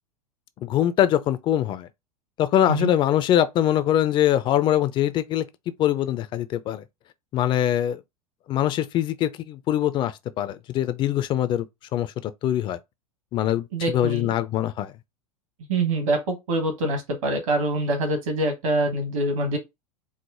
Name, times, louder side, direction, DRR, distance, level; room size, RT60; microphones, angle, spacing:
voice 1, 0.6-1.9 2.4-5.4 5.8-6.8 7.3-8.0 8.5-11.7 11.9-12.8 13.3-14.9, left 11 dB, 25° left, 0.4 m, -23 dB
voice 2, 13.7-14.3 15.7-19.6, right 2 dB, 60° right, 1.3 m, -25 dB
4.7 x 2.0 x 4.1 m
figure-of-eight pair, 85°, 19 cm